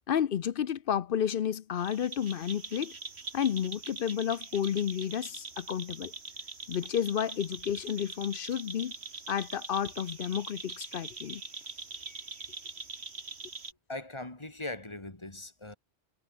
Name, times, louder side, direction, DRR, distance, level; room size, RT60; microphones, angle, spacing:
voice 1, 0.1-2.9 3.3-6.1 6.7-8.9 9.3-11.4, left 9 dB, 60° left, 0.8 m, -31 dB
sound 1, 1.8-13.7, right 4 dB, 75° right, 2.5 m, -43 dB
voice 2, 13.9-15.7, left 2 dB, 25° left, 2.3 m, -40 dB
omnidirectional pair, 1.1 m